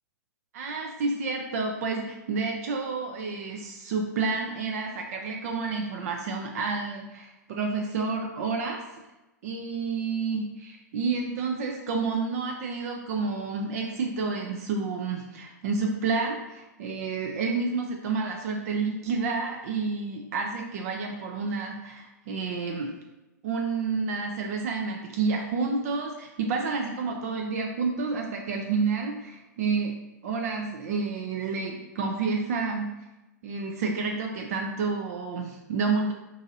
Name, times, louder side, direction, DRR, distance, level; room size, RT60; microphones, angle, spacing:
voice 1, 0.5-8.8 9.4-22.9 23.4-29.9 30.2-32.9 33.4-36.1, right 4 dB, 55° right, 1 dB, 0.4 m, -29 dB
2.8 x 2.6 x 2.6 m, 1.0 s
hypercardioid pair, 110°, 10 cm